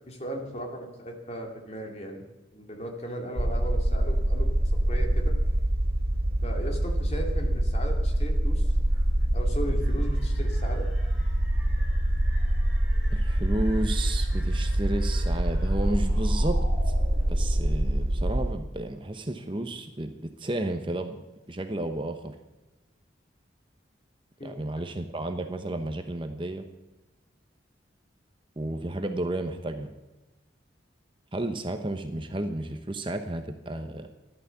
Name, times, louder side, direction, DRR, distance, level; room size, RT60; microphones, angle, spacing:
voice 1, 0.0-2.3 2.5-4.5 4.8-5.3 6.4-8.7 9.3-10.9 24.4-24.5, equal, 35° left, 2 dB, 2.6 m, -36 dB
sound 1, 3.4-18.5, right 1 dB, 55° right, 2.2 m, -25 dB
sound 2, 9.8-18.1, equal, 5° right, 6.5 m, -48 dB
voice 2, 13.1-16.6 17.3-21.2 21.5-22.3 24.4-26.6 28.6-29.9 31.3-34.1, right 1 dB, 25° right, 7 dB, 0.9 m, -32 dB
14.5 x 11.5 x 7.1 m, 1.1 s
head